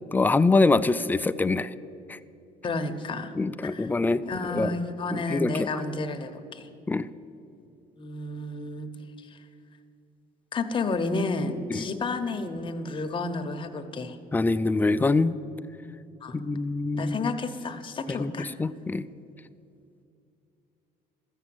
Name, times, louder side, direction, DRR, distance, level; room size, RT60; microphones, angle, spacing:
voice 1, 0.1-1.7 2.1-2.2 3.3-4.2 4.5-4.7 5.1-5.8 6.9-7.1 11.7-11.8 14.3-15.4 16.3-17.3 18.1-19.1, left 3 dB, 10° left, 13 dB, 0.3 m, -24 dB
voice 2, 2.6-3.4 3.6-3.9 4.2-6.7 8.0-8.9 9.3-9.4 10.5-14.2 16.2-16.4 16.9-18.5, left 3 dB, 30° left, 7 dB, 0.9 m, -31 dB
13.5 x 7.0 x 7.7 m, 2.7 s
cardioid pair, 110°, 17 cm